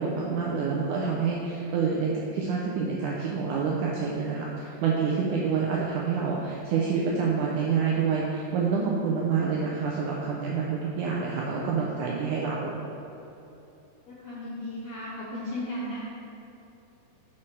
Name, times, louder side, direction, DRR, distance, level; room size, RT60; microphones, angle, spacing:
voice 1, 0.0-12.8, right 5 dB, 80° right, -3 dB, 1.7 m, -27 dB
voice 2, 14.1-16.0, left 1 dB, 70° left, -8 dB, 1.5 m, -35 dB
6.3 x 5.7 x 4.4 m, 3.0 s
omnidirectional pair, 4.2 m